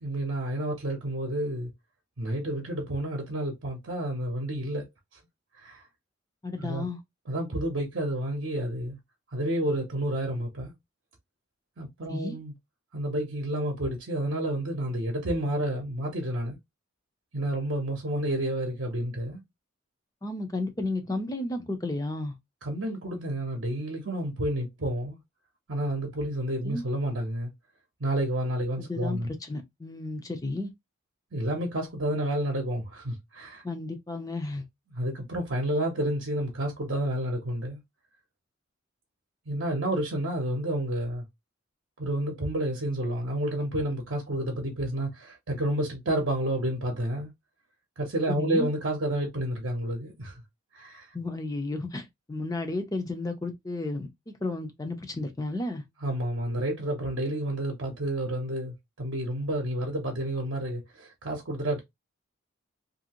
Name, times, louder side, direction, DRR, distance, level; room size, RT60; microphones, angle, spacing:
voice 1, 0.0-1.7 2.2-4.9 5.6-5.8 6.6-6.9 7.3-9.0 9.3-10.7 11.8-12.5 12.9-16.6 17.3-19.4 22.6-25.2 25.7-27.5 28.0-29.3 31.3-33.6 34.9-37.8 39.5-41.2 42.0-47.3 48.0-50.4 50.7-51.1 56.0-61.8, right 1 dB, 65° right, 0.7 m, -30 dB
voice 2, 6.4-7.0 12.1-12.4 20.2-22.3 26.6-26.8 28.8-30.7 33.6-34.6 48.3-48.7 51.1-54.1 54.4-55.8, left 2 dB, 15° left, 0.5 m, -33 dB
2.8 x 2.6 x 2.8 m
head